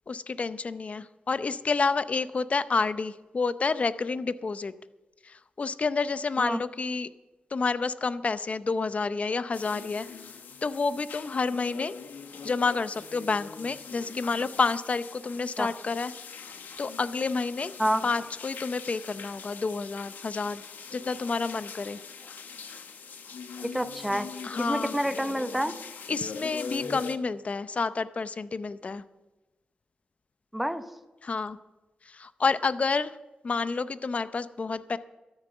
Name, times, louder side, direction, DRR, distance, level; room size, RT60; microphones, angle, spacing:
voice 1, 0.1-4.7 5.2-7.1 7.5-10.1 10.6-11.9 12.4-16.1 16.8-17.7 18.0-20.6 20.9-22.0 24.4-24.9 26.1-29.0 31.2-31.6 32.1-33.2 33.4-35.0, left 4 dB, 45° left, 14 dB, 0.6 m, -29 dB
sound 1, 9.5-27.2, left 5 dB, 85° left, 1.1 m, -42 dB
voice 2, 23.6-24.3 24.6-25.7 26.8-27.0 30.5-30.8, equal, 5° right, 10 dB, 0.9 m, -28 dB
13.0 x 9.9 x 6.8 m, 1.1 s
wide cardioid pair, 85°, 3 cm